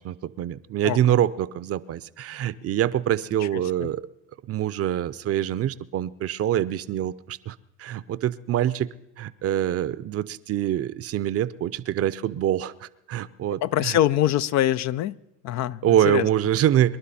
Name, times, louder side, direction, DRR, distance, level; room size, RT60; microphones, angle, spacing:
voice 1, 0.0-4.0 4.5-8.9 9.2-14.0 15.8-17.0, right 11 dB, 45° right, 17 dB, 0.7 m, -25 dB
voice 2, 13.6-15.2 15.4-16.3, left 12 dB, 55° left, 15 dB, 0.5 m, -23 dB
25.5 x 11.0 x 4.2 m, 0.86 s
supercardioid pair, 80°, 34 cm